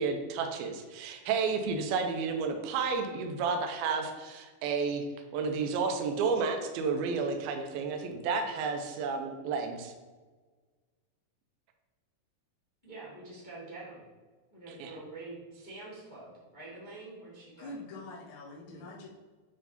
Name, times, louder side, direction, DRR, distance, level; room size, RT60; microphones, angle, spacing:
voice 1, 0.0-5.0 5.3-9.9 14.8-14.9, right 5 dB, 90° right, 4 dB, 2.2 m, -31 dB
voice 2, 12.8-14.0 14.5-17.7 18.6-19.0, right 2 dB, 50° left, -7 dB, 0.5 m, -46 dB
voice 3, 17.6-19.1, left 2 dB, 75° left, -5 dB, 1.7 m, -44 dB
9.1 x 3.6 x 4.0 m, 1.4 s
omnidirectional pair, 5.0 m